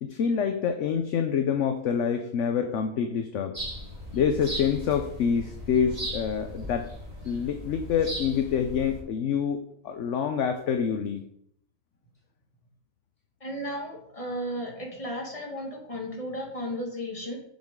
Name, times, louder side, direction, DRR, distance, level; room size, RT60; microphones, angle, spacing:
voice 1, 0.0-3.6 4.1-6.9 7.2-11.2, left 7 dB, 60° left, 6 dB, 0.9 m, -27 dB
sound 1, 3.5-9.0, equal, 25° right, 3.1 m, -37 dB
voice 2, 13.4-17.4, equal, 20° left, 0 dB, 1.9 m, -34 dB
7.5 x 7.1 x 3.7 m, 0.71 s
omnidirectional pair, 1.7 m